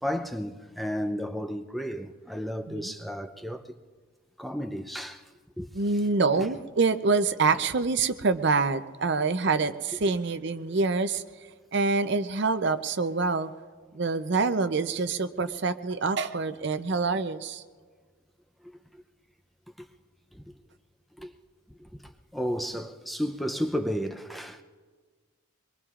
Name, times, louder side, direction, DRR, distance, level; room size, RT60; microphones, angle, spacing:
voice 1, 0.0-3.7 4.4-5.2 5.6-5.7 6.4-6.5 19.8-19.9 20.3-20.4 21.2-21.3 21.8-24.6, equal, ahead, 0.5 m, -33 dB
voice 2, 5.7-11.2 11.7-13.5 13.9-17.6, right 4 dB, 55° right, 0.6 m, -26 dB
24.5 x 22.0 x 2.5 m
head